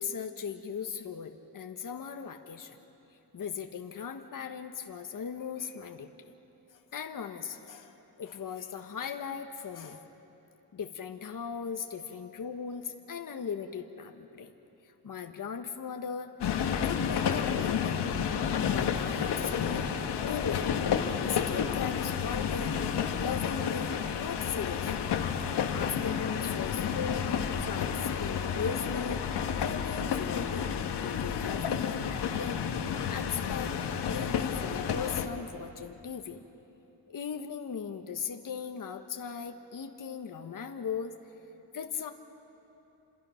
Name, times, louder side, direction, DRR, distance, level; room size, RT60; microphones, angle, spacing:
voice 1, 0.0-2.8 3.3-6.1 6.7-10.0 10.7-14.5 14.8-16.3 16.8-18.0 18.7-19.9 20.3-25.1 25.7-27.3 27.6-29.2 29.6-30.7 30.9-32.6 33.1-33.8 34.0-36.4 37.1-41.1 41.7-42.1, left 7 dB, 55° left, 5 dB, 1.3 m, -38 dB
sound 1, 16.4-35.3, left 7 dB, 90° left, 1.5 m, -31 dB
30.0 x 26.5 x 5.8 m, 3.0 s
cardioid pair, 85°, 39 cm